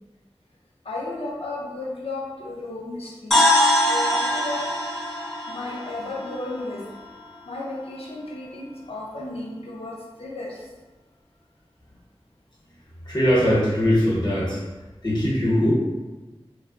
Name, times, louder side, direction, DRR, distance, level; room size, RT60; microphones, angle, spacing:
voice 1, 0.8-3.4 3.8-4.7 5.5-6.8 7.5-10.7, left 2 dB, 70° left, -3 dB, 0.6 m, -33 dB
sound 1, 3.3-7.3, left 1 dB, 5° left, 0.5 m, -23 dB
voice 2, 13.1-14.6 15.0-15.7, equal, 45° left, -7 dB, 1.0 m, -21 dB
2.9 x 2.2 x 2.4 m, 1.2 s
wide cardioid pair, 45°, 10 cm